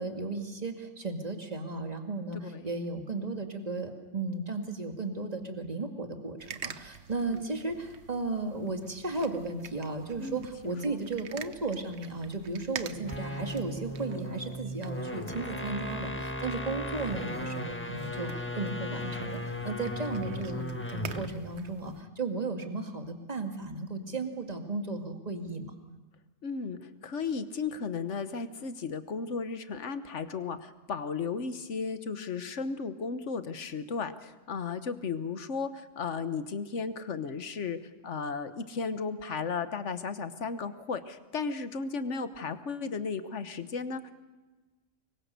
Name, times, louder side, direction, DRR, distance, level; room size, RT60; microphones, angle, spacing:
voice 1, 0.0-20.6 20.9-25.7, right 3 dB, 30° right, 4 dB, 2.2 m, -35 dB
sound 1, 6.4-22.0, right 7 dB, 65° right, 1.2 m, -47 dB
voice 2, 10.2-11.0 16.7-16.8 26.4-37.8 38.0-44.1, left 5 dB, 70° left, 11 dB, 1.5 m, -35 dB
sound 2, 12.9-21.4, left 1 dB, 10° left, 1.2 m, -37 dB
25.0 x 22.5 x 6.8 m, 1.2 s
omnidirectional pair, 1.3 m